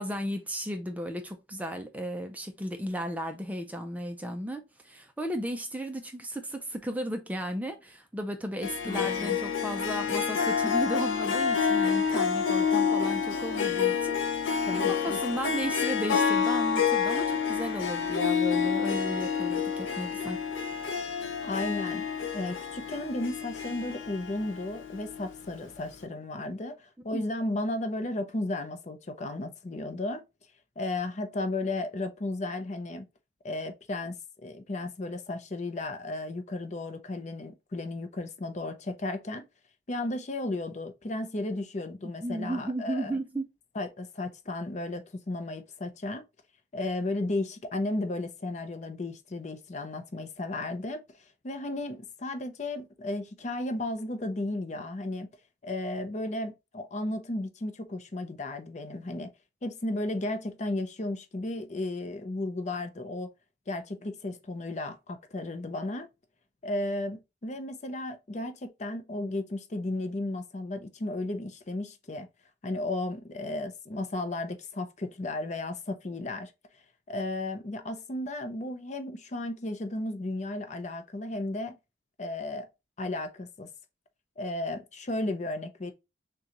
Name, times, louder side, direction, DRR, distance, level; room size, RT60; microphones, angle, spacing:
voice 1, 0.0-20.4 27.1-27.2 42.2-43.5, right 1 dB, 10° right, 0.5 m, -35 dB
Harp, 8.6-25.4, left 6 dB, 90° left, 0.7 m, -28 dB
voice 2, 8.8-9.4 14.7-15.2 21.4-22.1 22.3-30.2 30.8-33.0 33.4-34.2 34.4-39.5 39.9-43.1 43.8-46.2 46.7-51.2 51.4-55.3 55.6-59.3 59.6-63.3 63.7-66.1 66.6-72.3 72.6-76.5 77.1-81.8 82.2-82.7 83.0-83.7 84.4-85.9, left 2 dB, 40° left, 0.6 m, -34 dB
6.4 x 2.3 x 2.9 m
head